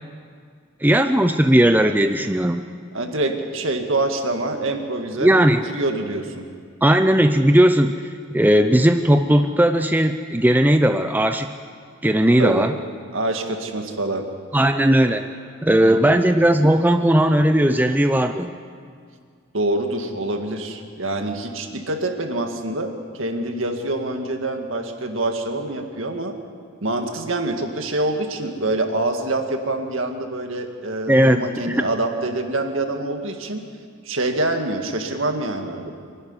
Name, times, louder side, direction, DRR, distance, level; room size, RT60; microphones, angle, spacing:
voice 1, 0.8-2.7 5.2-5.6 6.8-8.0 8.3-11.5 12.0-12.7 14.5-15.3 15.6-18.5 31.1-31.8, right 1 dB, 10° right, 7 dB, 0.5 m, -17 dB
voice 2, 2.9-5.3 5.7-6.5 12.4-12.7 13.1-14.3 15.8-16.2 19.5-26.3 26.8-33.6 34.0-35.9, right 2 dB, 65° right, 4 dB, 2.0 m, -25 dB
25.0 x 12.0 x 9.7 m, 2.1 s
head